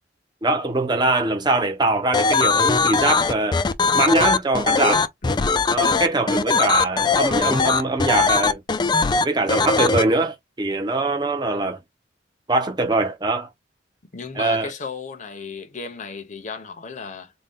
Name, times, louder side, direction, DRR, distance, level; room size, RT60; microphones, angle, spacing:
voice 1, 0.4-3.6 3.9-5.1 5.7-8.6 9.2-11.8 12.5-13.5 14.3-14.7, right 2 dB, 25° right, 0.8 m, -22 dB
sound 1, 2.1-10.0, left 4 dB, 25° left, 0.4 m, -20 dB
voice 2, 14.1-17.3, left 5 dB, 45° left, 0.7 m, -34 dB
4.0 x 2.2 x 3.5 m
head